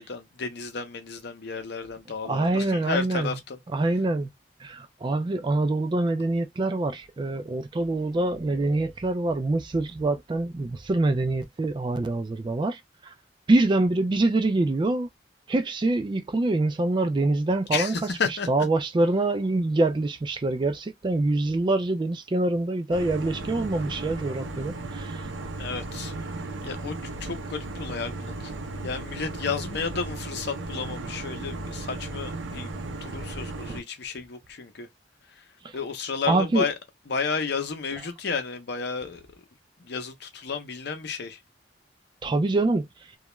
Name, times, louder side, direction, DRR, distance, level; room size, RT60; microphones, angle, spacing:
voice 1, 0.0-3.6 17.7-18.5 25.6-28.5 28.8-34.9 35.3-35.4 35.7-36.7 37.1-39.2 39.8-41.4, left 5 dB, 60° left, 0.6 m, -32 dB
voice 2, 2.2-3.4 3.7-4.3 4.6-13.1 13.5-15.1 15.5-17.9 18.5-25.3 35.6-35.8 36.3-36.6 42.2-42.9, right 2 dB, 25° right, 0.3 m, -25 dB
sound 1, 22.9-33.8, right 2 dB, 90° right, 0.5 m, -35 dB
2.3 x 2.1 x 3.0 m
head